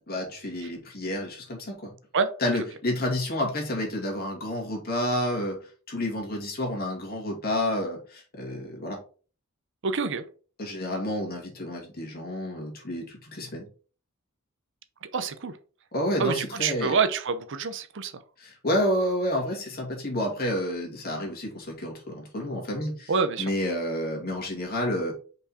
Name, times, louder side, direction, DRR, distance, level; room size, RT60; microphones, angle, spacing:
voice 1, 0.1-1.9 2.4-5.6 5.9-9.0 10.6-13.7 15.9-16.9 18.4-23.1 23.4-25.1, left 1 dB, 45° left, 2.2 m, -29 dB
voice 2, 9.8-10.2 15.0-15.5 16.2-18.1 23.1-23.5, right 5 dB, 60° right, 0.7 m, -26 dB
5.4 x 4.5 x 4.2 m
head